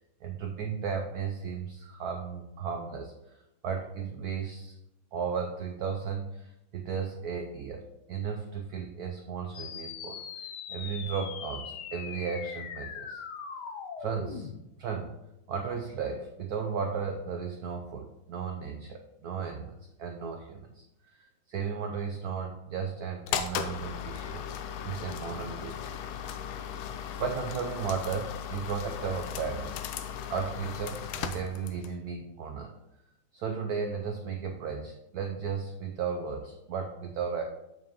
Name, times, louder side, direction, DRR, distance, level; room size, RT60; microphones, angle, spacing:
voice 1, 0.2-3.4 3.6-4.7 5.1-13.2 14.0-14.5 14.8-15.1 15.5-21.2 21.5-24.4 24.8-25.9 27.2-29.7 30.3-32.7 33.3-37.4, right 6 dB, 85° right, 3 dB, 0.8 m, -35 dB
sound 1, 9.5-14.6, left 7 dB, 65° left, 1.1 m, -41 dB
sound 2, 23.3-32.0, left 8 dB, 85° left, 1.5 m, -37 dB
7.1 x 6.0 x 2.9 m, 0.87 s
omnidirectional pair, 2.2 m